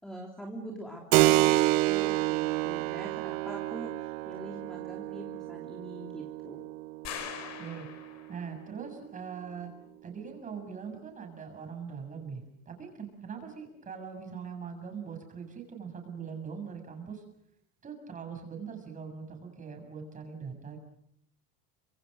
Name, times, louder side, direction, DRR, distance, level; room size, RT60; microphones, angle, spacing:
voice 1, 0.0-6.6, right 1 dB, ahead, 0 dB, 3.2 m, -43 dB
Keyboard (musical), 1.1-9.3, right 18 dB, 90° right, 1.0 m, -29 dB
sound 1, 7.0-8.5, left 8 dB, 45° left, 4.6 m, -41 dB
voice 2, 7.6-7.9 8.3-9.7 10.0-17.2 17.8-20.8, right 6 dB, 20° right, 4 dB, 6.8 m, -41 dB
30.0 x 26.0 x 6.6 m, 0.71 s
cardioid pair, 165°, 38 cm